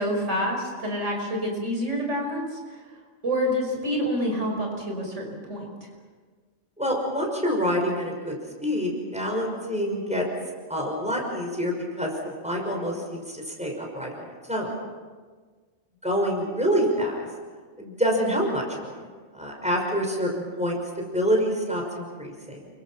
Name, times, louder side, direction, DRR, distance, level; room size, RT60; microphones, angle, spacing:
voice 1, 0.0-2.6 3.2-5.7, equal, 90° right, 1 dB, 5.8 m, -27 dB
voice 2, 6.8-8.3 8.6-10.3 10.7-12.1 12.4-14.7 16.0-17.3 17.8-18.9 19.3-22.7, equal, 5° right, 0 dB, 5.8 m, -27 dB
29.0 x 24.5 x 5.9 m, 1.5 s
omnidirectional pair, 1.2 m